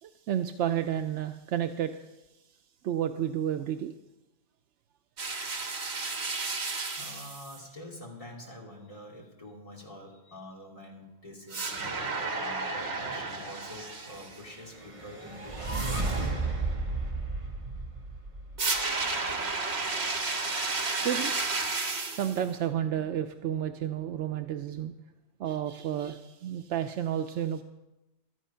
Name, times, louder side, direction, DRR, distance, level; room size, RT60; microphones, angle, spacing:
voice 1, 0.0-1.9 2.8-3.9 20.9-21.3 22.1-24.9 25.4-27.6, right 10 dB, 80° right, 8 dB, 0.9 m, -31 dB
sound 1, 5.2-7.6 11.5-14.4 18.6-22.4, right 3 dB, 65° right, 1.6 m, -32 dB
voice 2, 6.4-16.5, left 1 dB, 30° left, -2 dB, 2.8 m, -46 dB
sound 2, 14.7-18.8, right 3 dB, 30° right, 1.1 m, -33 dB
13.0 x 11.0 x 5.6 m, 1.0 s
omnidirectional pair, 1.2 m